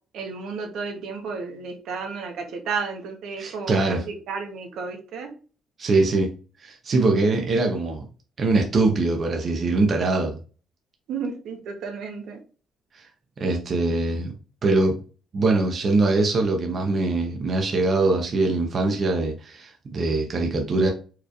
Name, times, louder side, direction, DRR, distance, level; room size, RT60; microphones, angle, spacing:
voice 1, 0.1-5.3 11.1-12.4, right 5 dB, 75° right, 4 dB, 1.0 m, -32 dB
voice 2, 3.4-4.0 5.8-6.3 6.6-8.0 8.4-10.4 12.9-13.1 13.4-14.3 14.6-15.0 15.3-20.9, right 3 dB, 40° right, 2 dB, 0.8 m, -22 dB
4.6 x 3.1 x 2.5 m, 0.37 s
cardioid pair, 130°, 0 cm